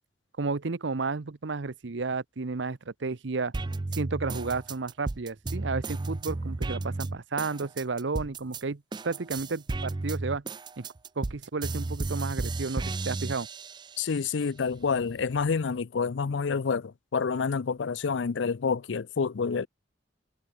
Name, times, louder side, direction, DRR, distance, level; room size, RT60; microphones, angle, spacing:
voice 1, 0.4-3.5 4.0-10.4 10.8-10.9 11.2-13.5, right 4 dB, 75° right, 0.8 m, -32 dB
sound 1, 3.5-8.6 8.9-14.1 14.6-15.5, right 3 dB, 25° right, 0.4 m, -34 dB
voice 2, 14.0-19.7, left 5 dB, 75° left, 0.5 m, -28 dB
head